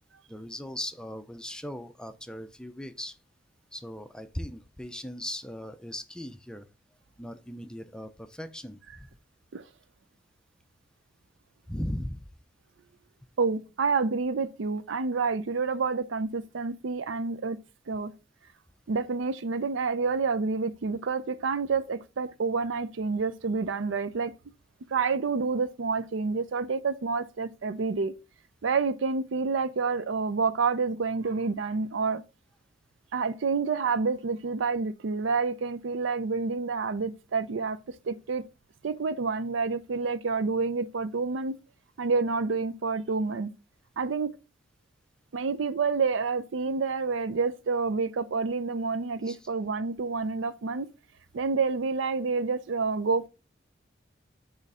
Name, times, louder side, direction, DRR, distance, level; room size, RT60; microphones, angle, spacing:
voice 1, 0.3-3.2 3.7-6.7 7.2-9.1 11.7-12.3 49.2-49.5, left 1 dB, 5° left, 0.4 m, -38 dB
voice 2, 13.4-17.6 17.9-18.1 18.9-24.3 24.9-28.1 28.6-32.2 33.1-37.8 38.0-38.4 38.8-41.5 42.0-43.5 44.0-44.3 45.3-50.9 51.3-53.3, right 4 dB, 75° right, 0.5 m, -28 dB
6.6 x 3.1 x 4.8 m
head